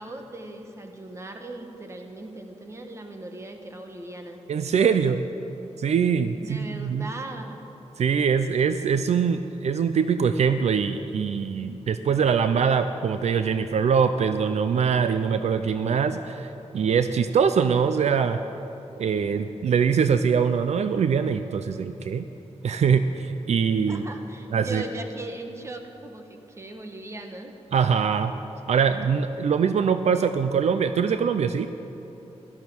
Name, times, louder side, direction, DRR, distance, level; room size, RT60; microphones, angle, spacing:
voice 1, 0.0-4.4 6.4-7.6 23.9-27.5, right 2 dB, 25° right, 4 dB, 1.2 m, -38 dB
voice 2, 4.5-5.2 5.8-7.1 8.0-18.4 19.0-22.3 22.6-24.0 24.5-24.8 27.7-28.3 28.7-31.7, right 6 dB, 70° right, 10 dB, 0.5 m, -23 dB
17.0 x 12.5 x 6.1 m, 3.0 s
wide cardioid pair, 170°, 12 cm